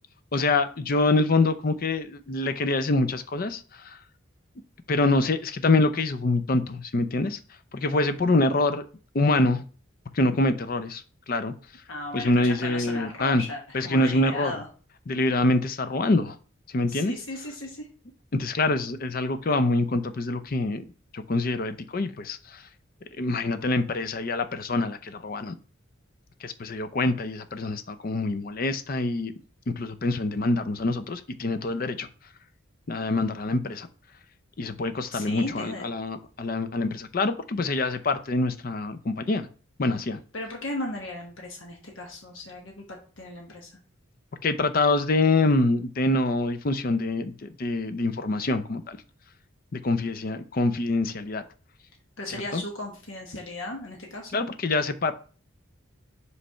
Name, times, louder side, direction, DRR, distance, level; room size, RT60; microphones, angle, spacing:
voice 1, 0.3-4.0 4.9-7.4 7.7-8.9 9.1-9.6 10.1-11.5 12.1-13.4 13.7-14.5 15.1-16.4 16.7-17.1 18.3-20.8 21.1-22.6 23.2-25.5 26.4-29.3 29.8-32.1 32.9-33.9 34.6-39.5 39.8-40.2 44.4-49.0 49.7-51.4 52.3-52.6 54.3-55.1, left 2 dB, 45° left, 0.5 m, -25 dB
voice 2, 11.9-14.7 16.9-17.9 35.1-35.9 40.3-43.7 52.2-54.3, left 2 dB, 70° left, 1.1 m, -36 dB
5.2 x 3.3 x 5.5 m
head